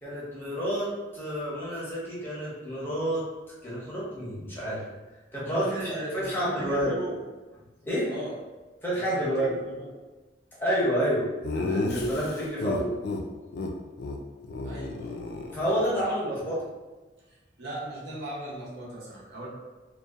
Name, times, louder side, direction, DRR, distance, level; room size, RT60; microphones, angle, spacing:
voice 1, 0.0-3.2 3.6-4.8 5.3-6.9 7.8-8.1 8.8-9.5 10.6-11.2 11.5-13.0 15.5-16.6, equal, 10° left, -8 dB, 0.6 m, -29 dB
voice 2, 5.5-7.2 8.1-8.3 9.0-9.9 14.6-15.1 17.3-19.5, right 1 dB, 70° right, -6 dB, 0.8 m, -38 dB
Laughter, 11.4-13.2 13.5-13.7 14.0-14.2 14.4-16.0, left 2 dB, 60° left, 0.3 m, -32 dB
2.7 x 2.2 x 2.3 m, 1.2 s
head